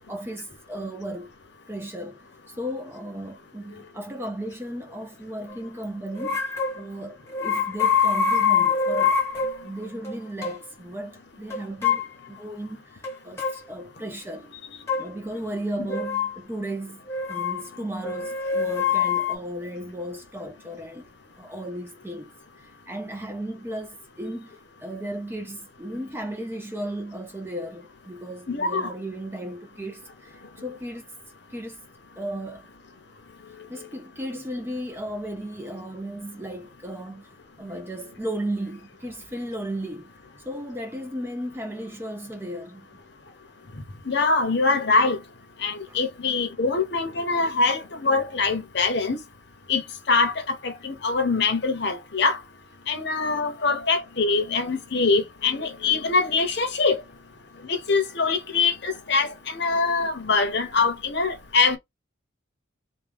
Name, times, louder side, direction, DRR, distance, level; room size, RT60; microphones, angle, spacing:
voice 1, 0.0-1.3 1.7-6.4 6.8-9.2 9.6-14.5 15.0-21.1 21.4-22.3 22.6-31.0 31.5-31.8 32.2-32.7 33.7-37.3 37.6-40.1 40.4-42.9 45.9-46.0 53.3-53.5, right 1 dB, 10° right, 0.5 m, -35 dB
sound 1, 6.2-6.8 7.3-9.6 10.0-10.1 10.4-10.6 11.5-12.1 13.0-13.6 14.9-15.0 15.9-16.3 17.1-17.6 18.0-19.3, left 6 dB, 15° left, 0.9 m, -24 dB
voice 2, 28.5-28.9 44.1-45.2 45.6-49.2 49.7-49.8 50.1-50.3 50.6-52.4 52.9-57.0 57.6-61.8, left 4 dB, 55° left, 0.8 m, -23 dB
3.5 x 2.3 x 3.4 m
head